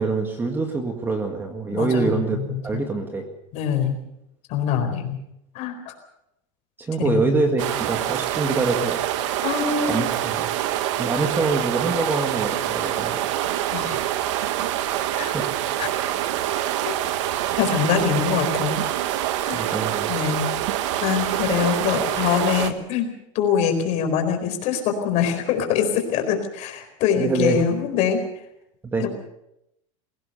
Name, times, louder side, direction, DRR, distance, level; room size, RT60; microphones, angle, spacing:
voice 1, 0.0-2.4 2.6-3.3 6.8-9.0 9.8-10.5 11.0-13.2 15.1-15.5 19.5-20.1 27.2-27.6 28.8-29.1, right 3 dB, 10° right, 4 dB, 1.9 m, -25 dB
voice 2, 1.7-2.9 3.5-4.0 4.5-5.2 5.5-5.9 7.0-7.6 9.4-10.1 13.7-14.0 15.2-15.3 15.8-15.9 17.6-18.8 19.4-19.6 20.1-20.5 21.0-23.1 23.3-28.2 29.0-29.1, left 7 dB, 45° left, 5 dB, 4.4 m, -24 dB
sound 1, 7.6-22.7, right 12 dB, 65° right, 1.5 m, -25 dB
22.0 x 17.0 x 6.9 m, 0.82 s
supercardioid pair, 160°, 16 cm